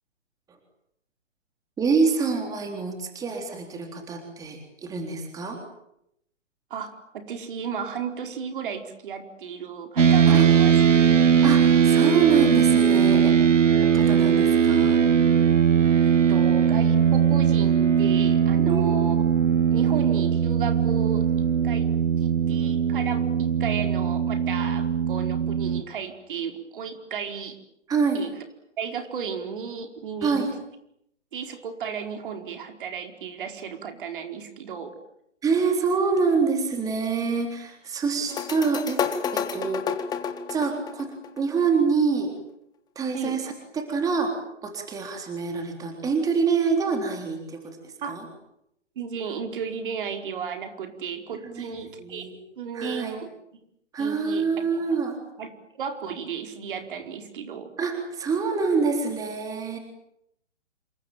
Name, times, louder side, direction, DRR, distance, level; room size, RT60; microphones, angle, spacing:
voice 1, 1.8-5.6 10.2-10.5 11.4-13.3 13.8-15.0 18.6-19.0 27.9-28.3 30.2-30.5 35.4-39.9 40.5-42.3 43.0-44.3 44.6-48.2 51.4-51.6 52.0-52.4 52.7-53.1 53.9-55.2 57.8-59.8, right 5 dB, 10° right, 4 dB, 3.7 m, -26 dB
voice 2, 6.7-10.8 16.0-19.2 19.7-21.9 22.2-27.6 28.1-28.3 28.8-30.5 31.3-34.9 43.1-43.4 48.0-48.2 48.9-52.3 52.6-53.3 54.0-55.0 55.4-57.7, right 7 dB, 45° right, 6 dB, 4.7 m, -34 dB
sound 1, 10.0-25.8, right 8 dB, 80° right, 1.6 m, -20 dB
sound 2, 38.3-41.8, left 7 dB, 10° left, 1.7 m, -30 dB
28.0 x 23.5 x 9.1 m, 0.76 s
figure-of-eight pair, 145°, 36 cm